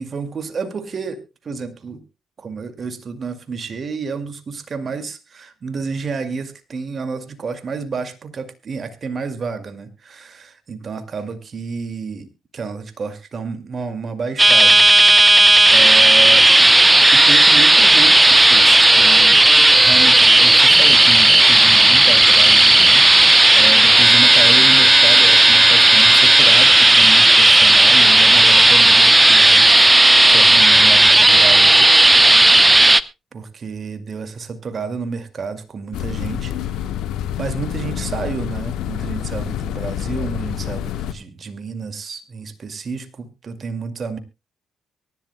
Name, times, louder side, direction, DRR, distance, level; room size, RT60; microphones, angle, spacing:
voice 1, 0.0-2.0 2.4-14.8 15.2-15.3 15.7-16.5 17.1-23.1 23.5-29.9 30.2-31.9 33.3-36.9 37.4-44.2, right 5 dB, 50° right, 10 dB, 2.2 m, -30 dB
sound 1, 14.4-33.0, right 2 dB, 15° right, 0.8 m, -11 dB
sound 2, 35.9-41.1, left 10 dB, 80° left, 1.1 m, -27 dB
23.5 x 11.5 x 2.2 m, 0.26 s
supercardioid pair, 55°, 0 cm